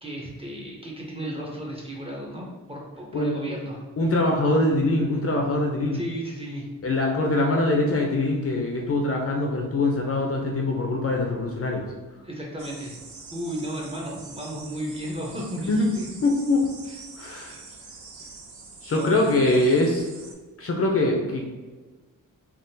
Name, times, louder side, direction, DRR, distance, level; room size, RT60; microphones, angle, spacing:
voice 1, 0.0-3.9 5.9-6.7 12.2-12.9 13.3-16.1 17.4-17.9 18.9-19.4, equal, 15° right, -3 dB, 0.7 m, -34 dB
voice 2, 3.1-3.6 4.0-6.0 6.8-11.8 15.7-15.8 16.2-16.7 17.1-17.5 18.8-20.1 20.6-21.5, left 2 dB, 45° left, 1 dB, 0.5 m, -23 dB
sound 1, 12.6-20.3, right 4 dB, 60° right, 0.6 m, -45 dB
3.6 x 2.4 x 2.7 m, 1.2 s
wide cardioid pair, 135°, 34 cm